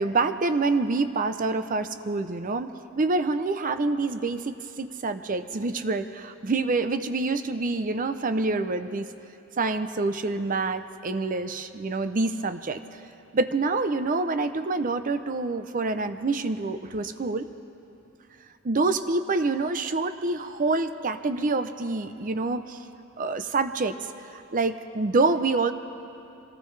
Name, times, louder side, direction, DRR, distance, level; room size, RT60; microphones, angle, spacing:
voice 1, 0.0-2.7 3.0-9.1 9.6-12.8 13.3-17.5 18.6-22.8 23.2-24.0 24.3-25.7, right 3 dB, 40° right, 10 dB, 0.6 m, -26 dB
25.0 x 17.5 x 3.3 m, 2.8 s
head